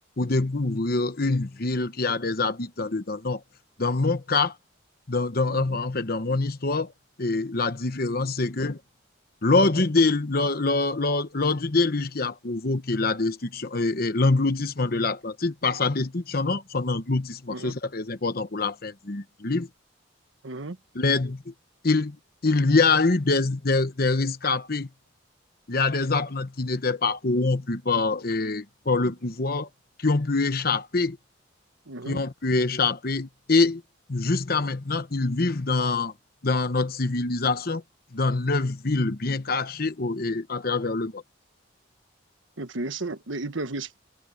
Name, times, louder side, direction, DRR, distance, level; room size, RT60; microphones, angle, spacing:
voice 1, 0.2-3.4 3.8-4.5 5.1-6.9 7.2-8.8 9.4-19.7 20.9-21.5 21.8-22.2 22.4-24.9 25.7-29.7 30.0-31.2 32.1-33.8 34.1-36.1 36.4-37.8 38.1-41.2, left 3 dB, 50° left, 1.1 m, -25 dB
voice 2, 5.5-5.8 17.5-17.7 20.4-20.8 31.9-32.2 42.6-44.0, right 2 dB, 80° right, 1.3 m, -34 dB
head